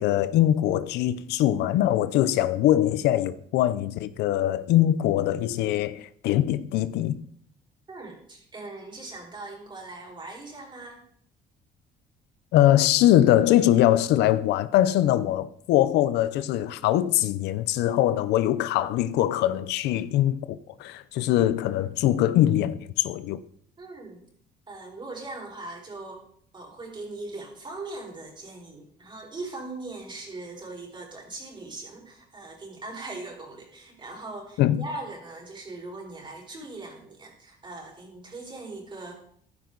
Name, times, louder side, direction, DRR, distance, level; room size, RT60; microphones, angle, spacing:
voice 1, 0.0-7.2 12.5-23.4 34.6-34.8, left 13 dB, 85° left, 0.7 m, -22 dB
voice 2, 7.9-11.0 23.8-24.2 24.7-26.2 26.5-39.2, right 2 dB, 25° right, 4.8 m, -40 dB
14.5 x 11.5 x 4.0 m
cardioid pair, 110°, 17 cm